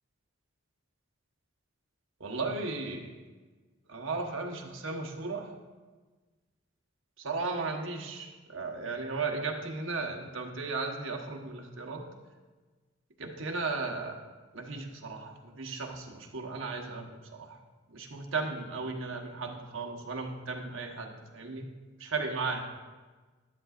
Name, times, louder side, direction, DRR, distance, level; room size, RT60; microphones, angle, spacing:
voice 1, 2.2-3.1 3.9-5.5 7.2-12.0 13.2-14.2 14.5-17.6 17.9-21.7 22.0-22.6, right 3 dB, 60° right, 2 dB, 1.2 m, -35 dB
11.5 x 11.0 x 2.5 m, 1.3 s
head